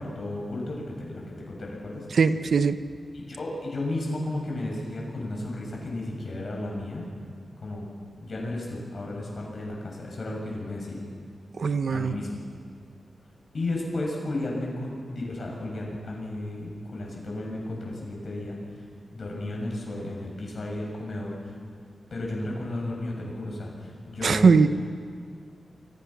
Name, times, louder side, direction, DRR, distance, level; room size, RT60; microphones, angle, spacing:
voice 1, 0.0-2.1 3.3-7.0 7.6-7.9 8.2-11.0 11.9-12.4 13.5-18.6 19.1-21.5 22.1-24.5, left 1 dB, 50° left, -1 dB, 8.0 m, -33 dB
voice 2, 2.1-2.8 11.6-12.2 24.2-24.7, right 5 dB, 65° right, 10 dB, 1.0 m, -20 dB
29.5 x 24.0 x 6.2 m, 2.3 s
wide cardioid pair, 135°, 0 cm